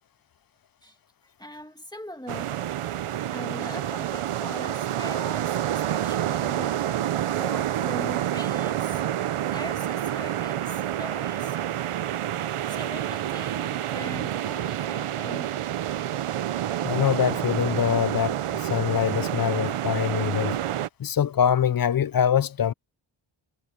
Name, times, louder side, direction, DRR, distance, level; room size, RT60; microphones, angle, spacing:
voice 1, 1.4-2.6 3.3-7.0 7.3-9.0 9.4-11.6 12.7-15.5, left 1 dB, 10° left, 1.8 m, -41 dB
sound 1, 2.3-20.9, right 11 dB, 85° right, 0.7 m, -28 dB
voice 2, 16.8-20.6 21.0-22.7, left 9 dB, 45° left, 0.5 m, -24 dB
wide cardioid pair, 110°, 49 cm